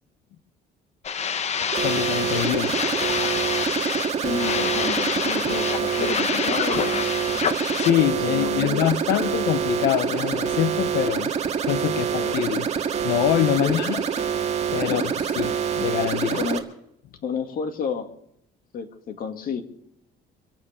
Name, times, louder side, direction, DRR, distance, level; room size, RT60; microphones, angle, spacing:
sound 1, 1.0-7.9, left 7 dB, 40° left, 0.9 m, -27 dB
sound 2, 1.7-16.6, right 7 dB, 40° right, 1.8 m, -26 dB
voice 1, 1.8-2.8 3.1-3.3 7.8-11.3 11.7-12.7 13.0-14.0 14.7-16.4, left 13 dB, 80° left, 12 dB, 0.7 m, -24 dB
voice 2, 4.2-7.1 7.3-7.4 8.3-8.9 12.1-12.4 13.6-13.8 14.9-15.1 16.3-16.6 17.2-18.1 18.7-19.6, left 6 dB, 60° left, 6 dB, 2.1 m, -31 dB
25.5 x 8.8 x 5.0 m, 0.75 s
cardioid pair, 110°, 17 cm